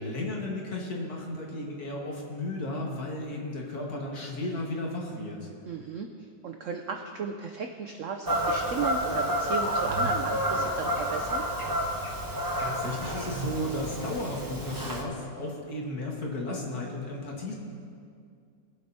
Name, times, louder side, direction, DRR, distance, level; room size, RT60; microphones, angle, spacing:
voice 1, 0.0-5.5 12.6-17.5, left 1 dB, 60° left, -2 dB, 2.1 m, -34 dB
voice 2, 5.6-6.1 6.4-11.4, right 6 dB, 75° right, 4 dB, 0.7 m, -35 dB
Fowl / Bird vocalization bird call bird song, 8.2-15.0, equal, 25° right, 0.4 m, -29 dB
21.0 x 7.6 x 2.8 m, 2.3 s
omnidirectional pair, 1.9 m